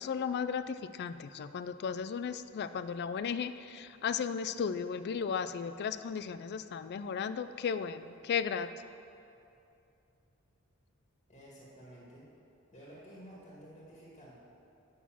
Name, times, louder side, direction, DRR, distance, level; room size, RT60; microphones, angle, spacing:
voice 1, 0.0-8.7, left 6 dB, 50° left, 12 dB, 0.3 m, -35 dB
voice 2, 11.3-12.3 12.7-14.4, equal, 35° left, -6 dB, 1.9 m, -52 dB
9.3 x 6.1 x 6.0 m, 2.7 s
head